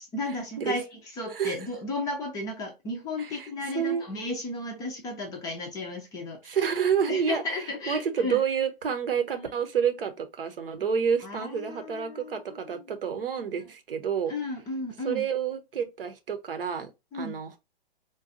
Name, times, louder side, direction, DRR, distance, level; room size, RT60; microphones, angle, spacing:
voice 1, 0.0-6.6 7.1-8.4 9.4-9.5 11.2-13.0 13.4-13.7 14.3-15.2 17.1-17.4, left 2 dB, 10° left, 0.5 m, -34 dB
voice 2, 6.5-7.4 7.9-14.3 15.0-17.6, right 7 dB, 65° right, 0.8 m, -29 dB
3.9 x 2.3 x 2.6 m
figure-of-eight pair, 115°, 30 cm